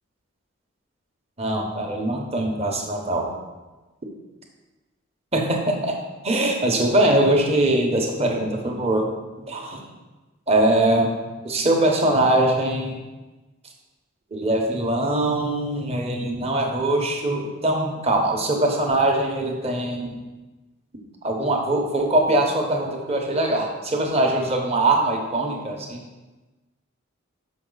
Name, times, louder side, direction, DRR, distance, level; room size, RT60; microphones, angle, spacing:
voice 1, 1.4-3.3 5.3-6.0 6.2-9.1 9.5-9.8 10.5-11.1 11.4-13.0 14.3-20.2 21.2-26.0, right 1 dB, 30° right, 1 dB, 1.0 m, -22 dB
6.3 x 5.8 x 4.0 m, 1.2 s
head